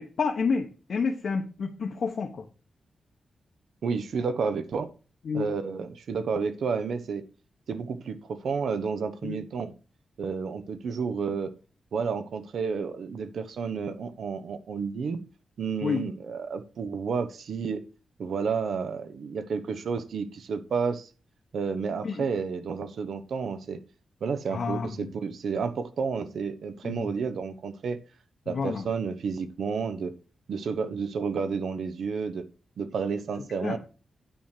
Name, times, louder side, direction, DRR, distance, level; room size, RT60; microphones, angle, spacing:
voice 1, 0.0-2.3 5.3-5.5 9.2-9.4 15.8-16.0 22.0-22.3 24.5-25.1 26.8-27.1 28.5-28.8 33.6-33.8, left 5 dB, 60° left, 2 dB, 1.1 m, -29 dB
voice 2, 3.8-4.9 5.3-7.2 7.7-9.7 10.2-11.5 11.9-15.2 15.6-17.8 18.2-21.1 21.5-23.8 24.2-28.0 28.5-30.1 30.5-32.5 32.8-33.8, right 5 dB, 75° right, 11 dB, 0.9 m, -31 dB
9.2 x 4.4 x 6.6 m, 0.36 s
wide cardioid pair, 115°, 0 cm